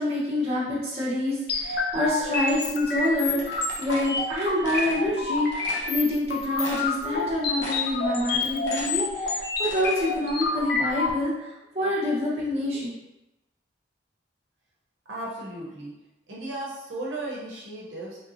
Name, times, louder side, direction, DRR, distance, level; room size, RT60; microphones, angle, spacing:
voice 1, 0.0-12.9, left 1 dB, 35° right, -8 dB, 1.1 m, -27 dB
sound 1, 1.5-11.1, left 3 dB, 55° left, 0.4 m, -28 dB
sound 2, 3.4-5.0 5.5-5.9 6.3-6.4 6.6-7.2 7.6-8.0 8.3-10.0, left 1 dB, 80° left, 0.9 m, -38 dB
voice 2, 15.1-15.9 16.3-18.2, right 1 dB, 80° right, -5 dB, 0.9 m, -35 dB
3.5 x 2.7 x 2.7 m, 0.95 s
head